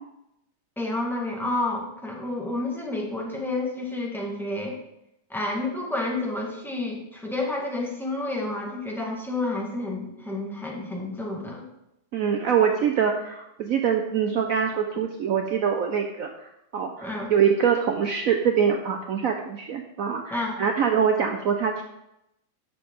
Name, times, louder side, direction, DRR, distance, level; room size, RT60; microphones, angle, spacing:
voice 1, 0.8-4.8 5.3-11.6 17.0-17.3 20.3-20.6, left 2 dB, ahead, -1 dB, 1.4 m, -30 dB
voice 2, 12.1-21.8, right 7 dB, 60° right, 4 dB, 0.9 m, -24 dB
10.5 x 6.5 x 3.7 m, 0.84 s
omnidirectional pair, 1.9 m